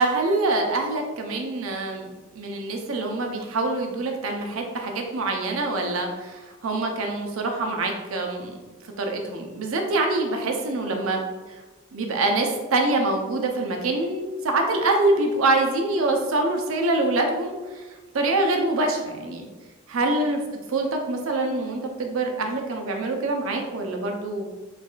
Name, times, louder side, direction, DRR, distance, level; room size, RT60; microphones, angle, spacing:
voice 1, 0.0-2.1 2.4-8.6 9.0-11.2 11.9-17.8 18.1-19.5 19.9-20.4 20.7-24.5, right 2 dB, 75° right, 3 dB, 0.5 m, -25 dB
4.6 x 2.4 x 2.3 m, 1.2 s
head